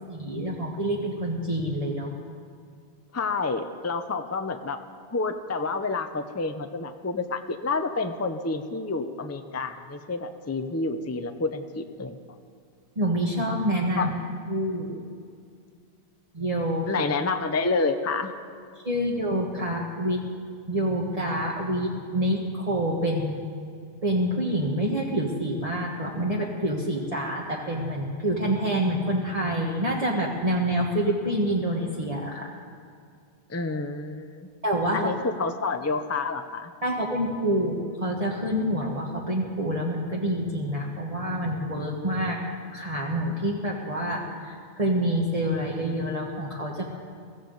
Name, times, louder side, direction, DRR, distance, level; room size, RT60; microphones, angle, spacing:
voice 1, 0.1-2.1 12.9-14.1 14.5-15.0 16.3-17.0 18.7-20.3 20.7-23.4 24.0-32.5 34.6-35.1 36.8-42.4 42.7-46.8, right 1 dB, 35° right, -3 dB, 1.5 m, -27 dB
voice 2, 3.1-4.8 5.1-12.2 14.0-14.1 16.9-18.3 33.5-34.5 34.9-36.7, left 3 dB, 20° left, 7 dB, 0.6 m, -29 dB
23.0 x 15.5 x 4.0 m, 2.3 s
omnidirectional pair, 1.1 m